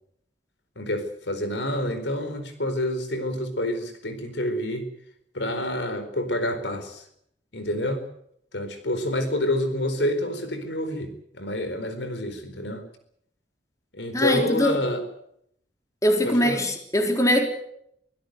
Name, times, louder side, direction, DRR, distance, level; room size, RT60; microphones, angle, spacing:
voice 1, 0.8-4.9 5.3-7.0 7.5-8.0 8.5-12.8 13.9-15.0 16.2-16.6, left 1 dB, 85° left, 9 dB, 4.4 m, -28 dB
voice 2, 14.1-14.8 16.0-17.5, equal, 20° left, 4 dB, 3.9 m, -22 dB
24.5 x 16.5 x 8.1 m, 0.72 s
head